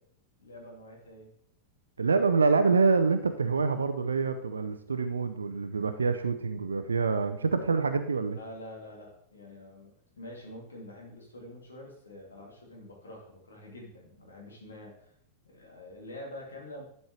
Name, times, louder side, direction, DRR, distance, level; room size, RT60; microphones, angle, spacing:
voice 1, 0.4-1.3 8.3-15.1 15.4-16.8, left 1 dB, 70° left, -1 dB, 2.4 m, -46 dB
voice 2, 2.0-8.4, right 4 dB, 75° right, 9 dB, 0.5 m, -26 dB
11.5 x 5.4 x 3.0 m, 0.69 s
figure-of-eight pair, 90°, 0 cm